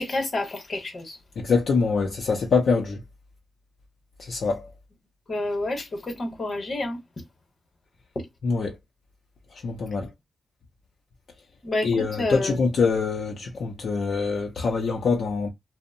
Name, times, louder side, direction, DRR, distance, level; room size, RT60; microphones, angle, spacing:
voice 1, 0.0-1.2 5.3-7.0 8.1-8.3 11.6-12.5, left 2 dB, 45° left, 0.9 m, -29 dB
voice 2, 1.4-3.0 4.2-4.7 8.4-8.7 9.6-10.1 11.8-15.5, left 4 dB, 70° left, 0.5 m, -24 dB
2.6 x 2.0 x 2.5 m
cardioid pair, 95°, 0 cm